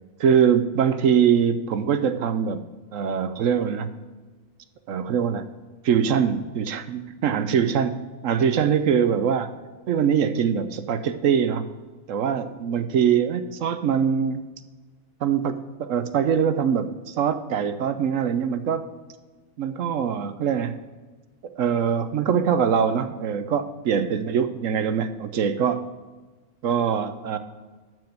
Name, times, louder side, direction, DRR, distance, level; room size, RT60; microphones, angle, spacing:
voice 1, 0.2-2.6 2.9-3.9 4.9-5.5 5.8-9.5 9.9-11.6 12.1-14.4 15.2-18.9 19.6-20.8 21.6-25.8 26.6-27.4, right 7 dB, 70° right, 11 dB, 1.1 m, -23 dB
12.5 x 4.7 x 7.7 m, 1.3 s
omnidirectional pair, 1.4 m